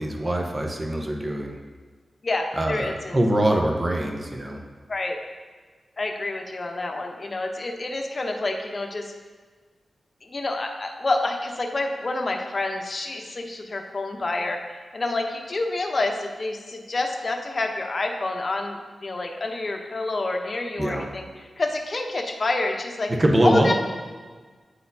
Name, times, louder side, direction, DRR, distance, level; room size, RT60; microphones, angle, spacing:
voice 1, 0.0-1.6 2.5-4.6 20.8-21.1 23.1-23.7, right 1 dB, 30° right, 2 dB, 0.8 m, -23 dB
voice 2, 2.2-3.2 4.9-5.2 6.0-9.1 10.2-21.2 21.6-23.1 23.4-23.7, left 2 dB, 50° left, 2 dB, 0.8 m, -28 dB
9.4 x 4.1 x 2.7 m, 1.4 s
cardioid pair, 50°, 0 cm